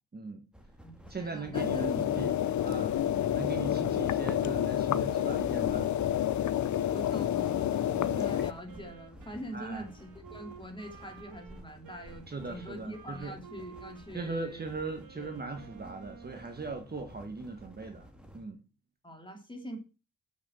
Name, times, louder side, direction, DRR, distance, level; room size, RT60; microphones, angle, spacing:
voice 1, 0.1-0.4 1.1-2.3 2.6-3.0 3.3-5.9 7.9-8.2 9.5-9.8 12.3-13.3 14.1-18.1 18.3-18.6, right 4 dB, 25° right, 1.5 m, -39 dB
sound 1, 0.5-18.5, equal, ahead, 2.2 m, -53 dB
voice 2, 0.8-2.1 6.8-14.7 15.1-15.4 19.0-19.8, equal, 15° left, 2.9 m, -43 dB
sound 2, 1.5-8.5, left 11 dB, 50° left, 0.7 m, -29 dB
Wind instrument woodwind instrument, 8.1-16.8, right 6 dB, 65° right, 2.1 m, -52 dB
8.2 x 6.5 x 8.0 m
cardioid pair, 115°, 36 cm